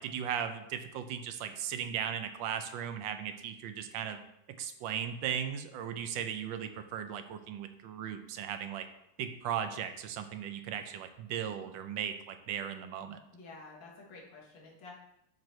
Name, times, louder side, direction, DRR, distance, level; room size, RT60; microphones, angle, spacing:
voice 1, 0.0-4.2 4.5-8.9 9.2-13.2, right 9 dB, 75° right, 8 dB, 1.4 m, -37 dB
voice 2, 13.3-15.0, left 3 dB, 70° left, -2 dB, 2.1 m, -50 dB
12.0 x 4.5 x 3.1 m, 0.82 s
omnidirectional pair, 2.2 m